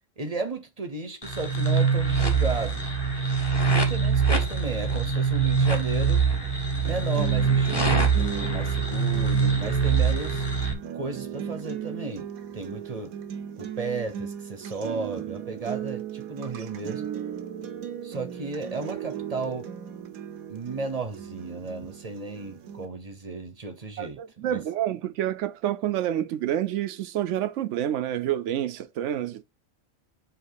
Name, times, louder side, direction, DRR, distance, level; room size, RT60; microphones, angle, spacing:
voice 1, 0.2-2.8 3.7-6.3 6.8-10.5 10.9-13.2 13.6-17.1 18.0-19.7 20.5-24.6, right 3 dB, 30° right, 0.8 m, -34 dB
sound 1, 1.2-10.7, right 5 dB, 20° left, 1.1 m, -24 dB
sound 2, 6.8-22.8, right 9 dB, 85° right, 1.3 m, -37 dB
voice 2, 24.0-29.4, right 11 dB, 65° right, 0.9 m, -28 dB
7.8 x 2.9 x 4.7 m
omnidirectional pair, 1.4 m